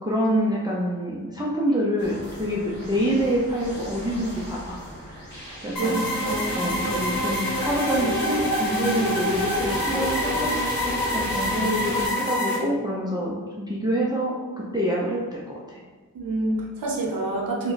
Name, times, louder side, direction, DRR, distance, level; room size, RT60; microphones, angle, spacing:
voice 1, 0.0-4.8 5.1-6.0 6.5-10.5 11.1-13.4 13.7-14.3 14.7-15.4 15.7-15.8 17.6-17.7, equal, 10° right, -5 dB, 0.4 m, -26 dB
sound 1, 2.0-12.1, equal, 30° left, 1.2 m, -35 dB
voice 2, 5.4-6.8 16.1-17.7, right 2 dB, 80° right, -2 dB, 0.7 m, -28 dB
sound 2, 5.8-12.6, left 1 dB, 90° left, 0.9 m, -26 dB
3.0 x 2.2 x 3.9 m, 1.5 s
wide cardioid pair, 110°, 35 cm